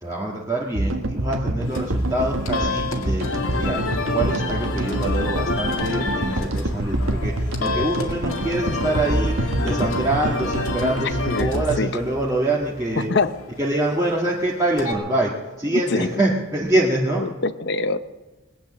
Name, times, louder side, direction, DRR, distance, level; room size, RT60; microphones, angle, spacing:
voice 1, 0.0-13.1 13.6-17.2, right 1 dB, 15° right, -5 dB, 1.7 m, -25 dB
sound 1, 0.7-13.1, right 1 dB, 80° right, 1.5 m, -26 dB
sound 2, 1.7-14.9, left 3 dB, 90° left, 2.1 m, -30 dB
voice 2, 11.3-11.9 13.0-13.3 15.7-16.1 17.2-18.0, left 3 dB, 55° left, 13 dB, 0.7 m, -24 dB
20.5 x 9.0 x 7.4 m, 1.2 s
head